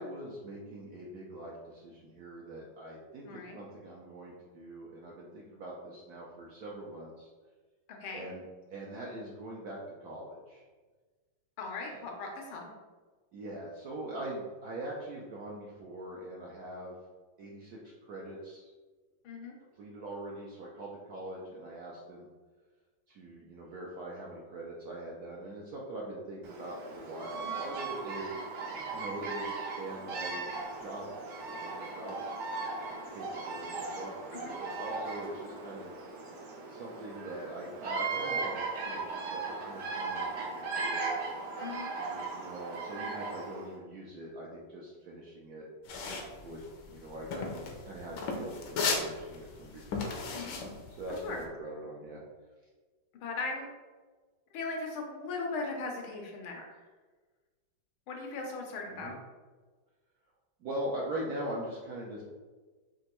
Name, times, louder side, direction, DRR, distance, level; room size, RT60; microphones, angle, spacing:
voice 1, 0.0-7.3 8.1-8.4 8.7-10.7 11.9-12.0 13.3-17.0 17.4-18.7 19.8-22.3 23.1-28.5 28.9-30.5 30.8-31.1 31.5-32.2 33.1-35.9 36.7-41.2 42.0-45.7 46.4-46.6 46.9-47.5 47.8-50.2 51.0-52.2 58.9-59.1 60.6-62.2, right 1 dB, 70° right, -4 dB, 0.9 m, -42 dB
voice 2, 3.2-3.6 7.9-8.3 11.6-12.7 19.2-19.5 27.3-27.6 34.3-34.5 41.6-41.9 50.3-50.6 51.2-51.4 53.2-53.7 54.5-56.8 58.1-59.2, left 3 dB, 85° left, 1 dB, 1.7 m, -38 dB
Bird vocalization bird call bird song, 26.4-43.7, right 4 dB, 85° right, 1.9 m, -38 dB
sound 1, 45.9-51.4, left 4 dB, 70° left, 1.1 m, -35 dB
5.4 x 2.9 x 3.0 m, 1.3 s
omnidirectional pair, 2.2 m